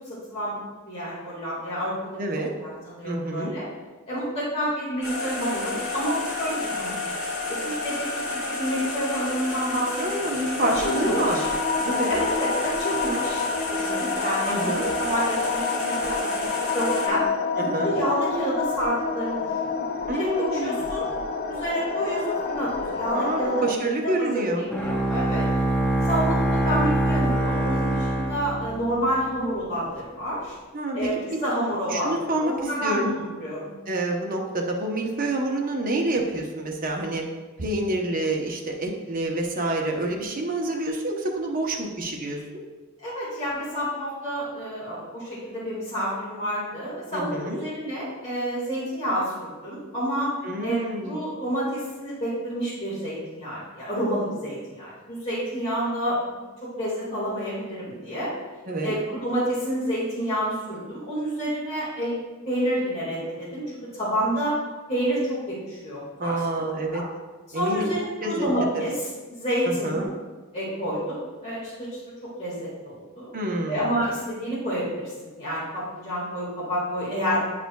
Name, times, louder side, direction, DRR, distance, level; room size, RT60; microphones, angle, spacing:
voice 1, 0.1-0.6 0.9-2.2 2.6-3.6 4.1-7.0 7.5-11.4 12.1-13.4 13.7-14.7 15.0-17.2 17.6-19.5 20.1-21.1 21.5-25.5 26.0-30.6 30.9-33.7 43.0-50.3 50.6-58.3 58.8-62.2 62.5-63.6 63.9-64.5 64.9-66.6 66.9-67.0 67.5-70.0 70.5-73.3 73.7-77.5, equal, 30° left, -9 dB, 1.9 m, -29 dB
voice 2, 2.2-2.5 3.0-3.5 10.0-11.4 11.8-12.2 14.5-14.9 17.6-18.0 20.1-20.8 23.1-24.7 30.7-31.1 31.9-33.1 33.9-37.2 37.6-42.6 47.1-47.6 50.4-51.1 58.7-59.0 66.2-67.0 67.5-67.9 68.2-68.5 69.7-70.1 73.3-73.9, right 1 dB, 45° right, 1 dB, 0.8 m, -27 dB
sound 1, 5.0-17.1, left 2 dB, 80° left, 2.1 m, -31 dB
sound 2, 10.6-23.8, left 4 dB, 45° left, 0.4 m, -28 dB
Bowed string instrument, 24.7-29.1, right 1 dB, 5° left, 0.7 m, -24 dB
10.0 x 4.9 x 2.3 m, 1.3 s
head